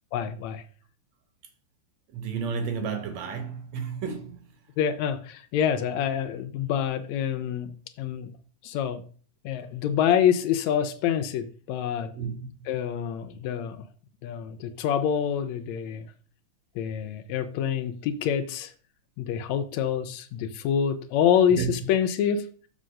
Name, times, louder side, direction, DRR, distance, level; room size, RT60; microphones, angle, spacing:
voice 1, 0.1-0.6 4.8-8.3 8.6-9.0 9.4-12.1 12.7-13.8 14.2-16.1 16.7-18.7 19.2-22.5, left 8 dB, 75° left, 1.8 m, -26 dB
voice 2, 2.1-4.4 12.1-12.4 12.6-12.7 21.5-21.7, right 6 dB, 70° right, 2.2 m, -31 dB
6.6 x 3.9 x 6.3 m
omnidirectional pair, 3.4 m